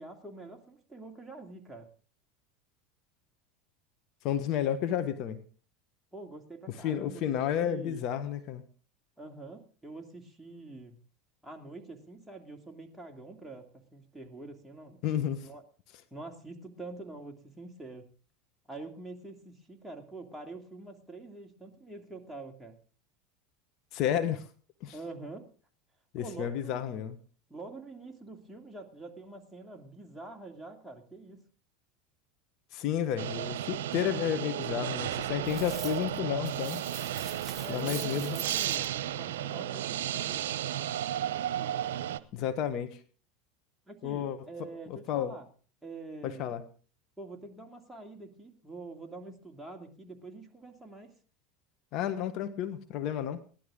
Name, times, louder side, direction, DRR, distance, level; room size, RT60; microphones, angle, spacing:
voice 1, 0.0-1.9 6.1-7.2 7.6-8.1 9.2-11.0 11.4-15.0 15.4-15.6 16.1-18.1 18.7-22.8 24.9-25.5 26.2-27.0 27.5-31.4 37.6-40.5 43.9-45.5 45.8-46.6 47.2-51.1, right 2 dB, 5° right, 1 dB, 2.5 m, -46 dB
voice 2, 4.2-5.4 6.7-8.6 15.0-15.5 23.9-24.5 24.8-24.9 26.1-27.2 32.7-36.8 37.7-38.4 42.3-43.0 44.0-44.4 44.9-45.3 46.2-46.6 51.9-53.4, left 10 dB, 55° left, 10 dB, 1.3 m, -31 dB
sound 1, 33.2-42.2, right 11 dB, 85° right, 0.7 m, -33 dB
sound 2, 35.5-36.2 36.4-38.9, right 7 dB, 30° right, 1.6 m, -44 dB
17.5 x 11.5 x 3.8 m, 0.40 s
supercardioid pair, 100°, 0 cm